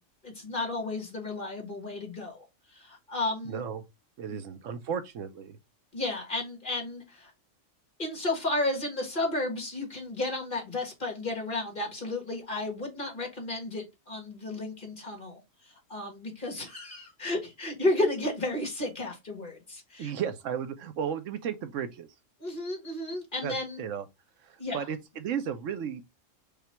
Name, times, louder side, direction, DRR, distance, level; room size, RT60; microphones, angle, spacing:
voice 1, 0.2-2.4 2.7-3.6 4.3-4.4 5.9-7.3 8.0-20.1 22.4-23.8 24.6-24.8, left 2 dB, 40° left, 1.9 m, -33 dB
voice 2, 3.4-3.8 4.2-5.6 20.0-22.1 23.4-24.1 24.4-26.0, right 8 dB, 80° right, 1.1 m, -34 dB
5.0 x 2.4 x 4.3 m
omnidirectional pair, 1.3 m